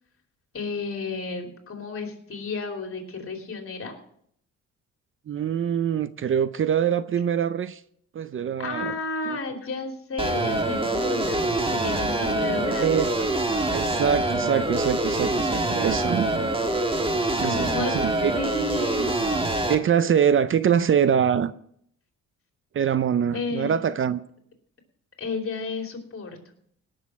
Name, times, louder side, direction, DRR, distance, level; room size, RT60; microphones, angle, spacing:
voice 1, 0.5-3.9 8.6-13.2 17.4-18.1 18.3-19.1 23.3-23.9 25.2-26.4, left 3 dB, 45° left, 2.9 m, -32 dB
voice 2, 5.3-7.8 8.1-8.9 9.3-9.4 12.6-13.3 13.7-16.6 17.3-18.3 19.7-21.5 22.7-24.2, right 8 dB, 45° right, 0.6 m, -24 dB
sound 1, 10.2-19.8, right 2 dB, 15° right, 1.5 m, -25 dB
18.0 x 6.4 x 5.9 m
cardioid pair, 90°, 30 cm